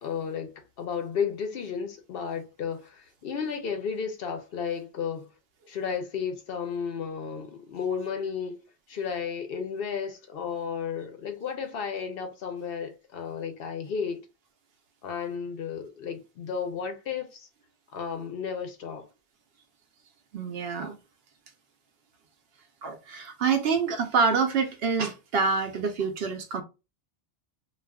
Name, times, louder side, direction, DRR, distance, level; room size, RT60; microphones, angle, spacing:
voice 1, 0.0-5.3 5.7-8.6 8.9-14.3 15.0-17.5 17.9-19.0, left 6 dB, 65° left, 0.7 m, -33 dB
voice 2, 20.3-20.9 22.8-26.6, right 5 dB, 65° right, 0.7 m, -26 dB
2.4 x 2.3 x 3.4 m
omnidirectional pair, 1.2 m